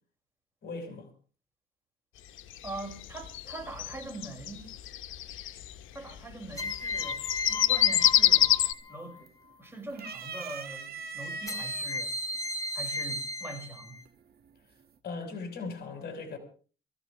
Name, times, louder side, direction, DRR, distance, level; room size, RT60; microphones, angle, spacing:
voice 1, 0.6-1.1 15.0-16.4, left 4 dB, 55° left, 5.3 m, -38 dB
sound 1, 2.4-5.7 6.5-8.7, left 13 dB, 80° left, 1.1 m, -25 dB
voice 2, 2.6-4.7 5.4-5.6 5.9-9.3 9.6-12.1 12.7-14.0, right 2 dB, 10° right, 6.0 m, -43 dB
sound 2, 3.5-4.0 6.6-9.2 11.5-14.0, left 2 dB, 15° left, 2.8 m, -35 dB
sound 3, 8.1-8.5 8.8-9.5 9.9-11.8 12.7-12.8 14.1-14.5, right 4 dB, 50° right, 2.1 m, -40 dB
24.5 x 15.0 x 3.4 m
cardioid pair, 90°, 20 cm